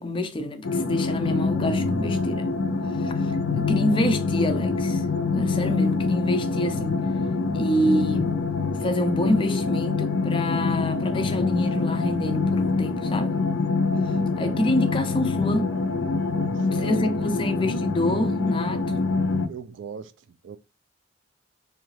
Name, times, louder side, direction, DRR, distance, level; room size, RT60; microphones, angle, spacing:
voice 1, 0.0-2.5 2.9-5.1 5.3-7.0 7.5-8.4 8.8-13.4 14.1-15.7 16.7-19.0, left 1 dB, 25° left, 0.4 m, -27 dB
sound 1, 0.6-19.5, left 4 dB, 90° left, 0.4 m, -25 dB
voice 2, 16.3-17.0 17.3-17.5 19.5-20.6, right 6 dB, 70° right, 0.3 m, -40 dB
3.1 x 2.3 x 3.1 m
head